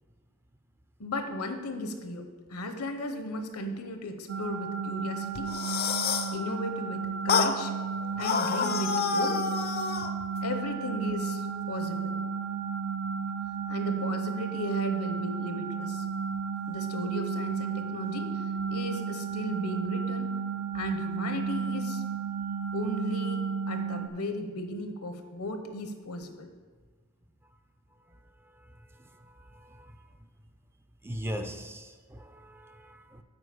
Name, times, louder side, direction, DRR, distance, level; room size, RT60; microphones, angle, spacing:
voice 1, 1.0-5.5 6.3-7.7 8.2-9.4 10.4-12.1 13.7-16.0 16.7-20.3 20.7-22.0 22.7-26.5, left 1 dB, 75° left, 7 dB, 0.9 m, -36 dB
sound 1, 4.3-24.1, right 6 dB, 60° right, 0.5 m, -33 dB
sound 2, 5.4-6.4 7.3-7.6 8.2-10.1, left 6 dB, 45° left, 0.5 m, -28 dB
voice 2, 29.2-29.9 31.0-33.2, equal, 10° right, 7 dB, 0.4 m, -40 dB
8.1 x 4.7 x 6.9 m, 1.4 s
head